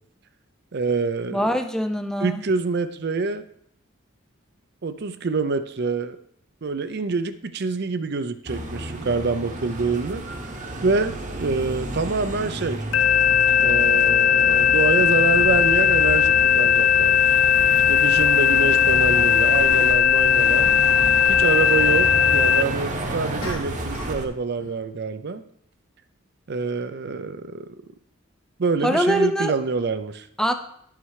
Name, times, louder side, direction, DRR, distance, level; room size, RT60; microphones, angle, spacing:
voice 1, 0.7-1.5 2.2-3.4 4.8-6.2 6.6-10.2 10.8-12.8 13.6-17.4 17.9-20.7 21.3-25.4 26.5-27.7 28.6-30.3, right 4 dB, 55° right, 10 dB, 0.5 m, -26 dB
voice 2, 1.3-2.4 28.8-29.5 30.4-30.5, equal, 5° left, 7 dB, 0.5 m, -23 dB
sound 1, 8.5-24.3, right 1 dB, 40° right, 1.0 m, -31 dB
sound 2, 12.9-22.6, left 8 dB, 85° left, 0.4 m, -18 dB
sound 3, 23.4-24.3 24.6-24.9, left 2 dB, 65° left, 1.5 m, -38 dB
10.5 x 5.7 x 4.8 m, 0.69 s
head